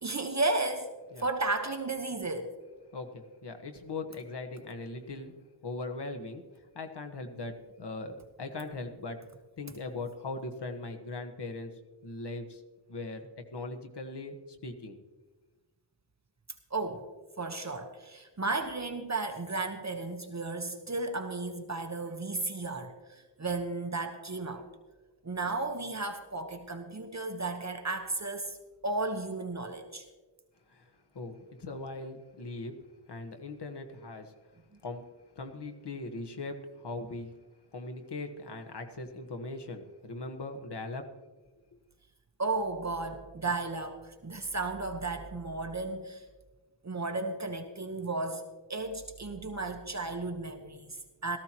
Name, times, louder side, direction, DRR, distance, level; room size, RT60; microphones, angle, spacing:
voice 1, 0.0-0.9 1.2-2.5 16.7-17.1 17.4-24.7 25.2-28.6 28.8-30.0 42.4-46.2 46.8-48.4 48.7-51.4, right 3 dB, 40° right, 5 dB, 1.1 m, -34 dB
voice 2, 2.9-5.3 5.6-9.2 9.6-11.7 12.0-12.6 12.9-15.0 30.7-32.7 33.1-34.3 34.8-35.1 35.3-37.3 37.7-41.1, left 2 dB, 65° left, 5 dB, 1.4 m, -40 dB
17.5 x 14.0 x 3.0 m, 1.2 s
wide cardioid pair, 75°, 44 cm